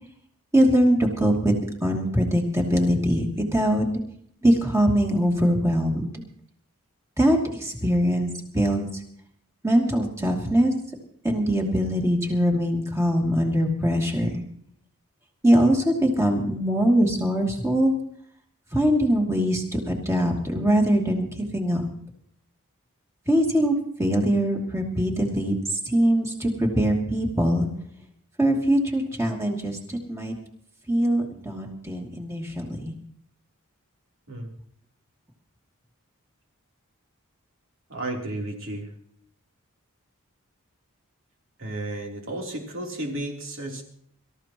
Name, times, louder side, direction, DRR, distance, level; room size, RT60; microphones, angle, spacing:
voice 1, 0.5-1.5 1.8-3.8 4.4-6.2 7.2-8.3 8.5-8.9 9.6-10.7 11.2-14.4 15.4-17.9 18.7-21.8 23.3-27.7 28.4-30.3 30.9-32.9, equal, 15° right, 0 dB, 2.7 m, -22 dB
voice 2, 37.9-38.9 41.6-43.8, right 1 dB, 60° right, 0 dB, 3.4 m, -33 dB
25.5 x 14.0 x 3.0 m, 0.67 s
head